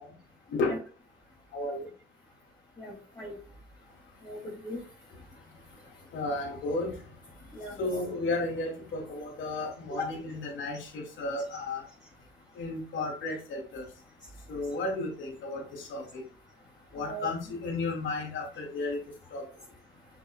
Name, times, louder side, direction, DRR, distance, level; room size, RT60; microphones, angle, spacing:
voice 1, 1.5-1.9 6.1-6.9 7.8-11.8 12.5-13.8 14.5-16.2 16.9-19.0 19.3-19.4, left 2 dB, 75° left, -1 dB, 3.2 m, -33 dB
voice 2, 2.8-3.4 4.2-4.8 7.5-7.8 10.0-10.1 16.9-17.3, left 1 dB, 20° left, -5 dB, 3.2 m, -38 dB
7.9 x 6.9 x 2.5 m, 0.37 s
cardioid pair, 90°, 20 cm